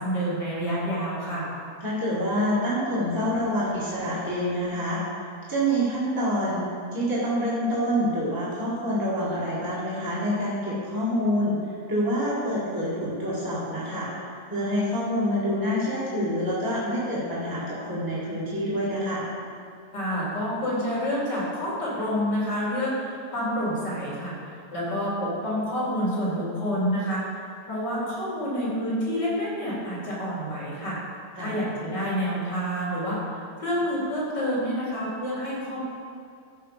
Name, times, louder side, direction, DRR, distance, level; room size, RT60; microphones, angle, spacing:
voice 1, 0.0-1.5 19.9-24.3 24.7-27.2 27.6-31.0 31.4-33.2 33.6-35.8, equal, 75° left, -6 dB, 3.5 m, -28 dB
voice 2, 1.8-5.0 5.5-11.6 11.9-14.1 14.5-19.2 31.4-31.6, equal, 10° right, -9 dB, 2.1 m, -27 dB
13.5 x 5.6 x 5.1 m, 2.4 s
omnidirectional pair, 1.9 m